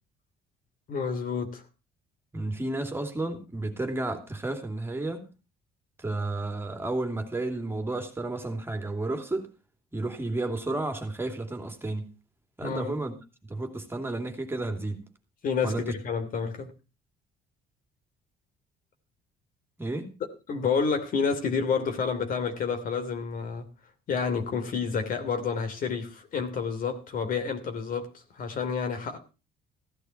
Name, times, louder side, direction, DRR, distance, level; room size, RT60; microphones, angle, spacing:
voice 1, 0.9-1.6 12.6-12.9 15.4-16.7 20.5-23.7 24.1-29.2, left 5 dB, 55° left, 2.9 m, -29 dB
voice 2, 2.3-5.3 6.0-9.5 9.9-12.1 12.6-13.1 13.4-15.1 15.6-15.9 19.8-20.1, right 2 dB, 15° right, 2.8 m, -32 dB
15.5 x 11.5 x 4.5 m
cardioid pair, 110°, 17 cm